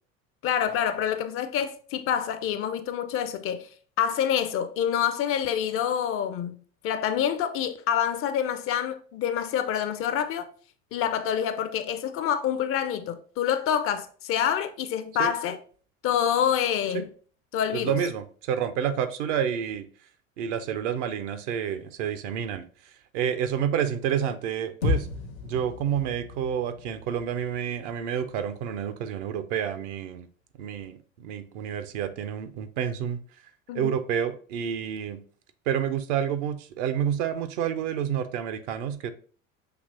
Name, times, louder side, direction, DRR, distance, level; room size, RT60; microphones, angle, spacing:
voice 1, 0.4-3.7 4.0-6.6 6.8-10.5 10.9-15.6 16.0-17.1 17.5-18.0 33.7-34.0, left 9 dB, 35° left, 0.4 m, -27 dB
voice 2, 17.7-19.9 20.4-22.7 23.1-25.1 25.4-30.3 30.6-33.2 33.7-35.2 35.7-39.1, right 8 dB, 65° right, 0.6 m, -29 dB
sound 1, 24.8-29.2, left 3 dB, 80° left, 0.9 m, -34 dB
6.0 x 2.9 x 2.6 m
hypercardioid pair, 75°, 40 cm